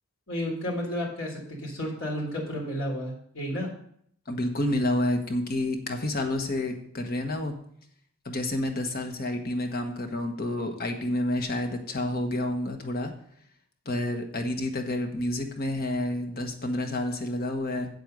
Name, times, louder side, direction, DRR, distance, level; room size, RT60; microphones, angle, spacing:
voice 1, 0.3-3.7, equal, 70° left, -2 dB, 3.6 m, -32 dB
voice 2, 4.3-7.6 8.2-13.1 13.8-17.9, left 1 dB, 50° left, 4 dB, 1.3 m, -29 dB
8.3 x 8.0 x 5.2 m, 0.65 s
head